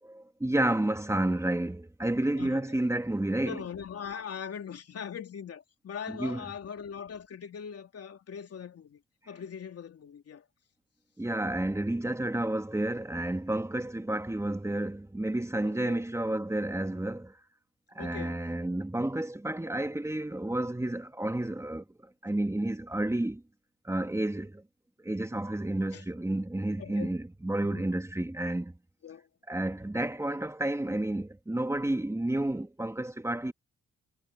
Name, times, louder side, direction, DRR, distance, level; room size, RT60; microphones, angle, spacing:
voice 1, 0.0-3.6 6.1-6.4 11.2-17.4 17.9-21.8 22.2-23.4 23.8-24.6 25.0-28.7 29.5-33.5, right 1 dB, 10° right, 2.3 m, -31 dB
voice 2, 3.4-9.0 9.3-10.4 15.6-16.0 18.0-18.4 25.9-26.0 26.8-27.1 27.6-27.9 29.0-29.3, left 7 dB, 50° left, 3.3 m, -41 dB
cardioid pair, 90°, 30 cm